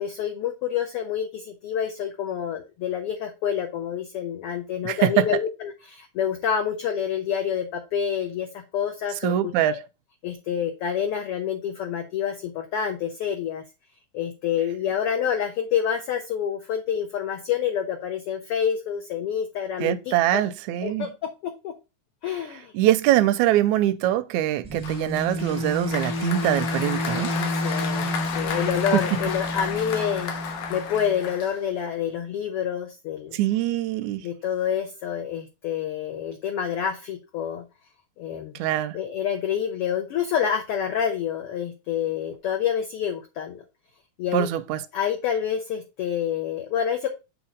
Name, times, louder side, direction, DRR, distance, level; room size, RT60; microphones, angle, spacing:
voice 1, 0.0-9.8 10.2-13.6 14.1-20.4 20.8-21.1 21.4-21.7 22.2-22.7 27.3-30.3 30.7-33.4 34.2-37.6 38.2-38.6 38.9-43.6 44.2-44.5 44.9-47.1, left 8 dB, 70° left, 1.4 m, -28 dB
voice 2, 4.8-5.3 9.2-9.8 19.8-21.1 22.7-27.3 28.9-29.2 33.3-34.3 38.5-39.0 44.3-44.8, right 13 dB, 80° right, 1.8 m, -23 dB
sound 1, 24.6-31.3, equal, 5° right, 0.4 m, -30 dB
Applause, 24.8-31.9, left 6 dB, 90° left, 2.7 m, -33 dB
8.1 x 3.1 x 5.0 m
omnidirectional pair, 3.6 m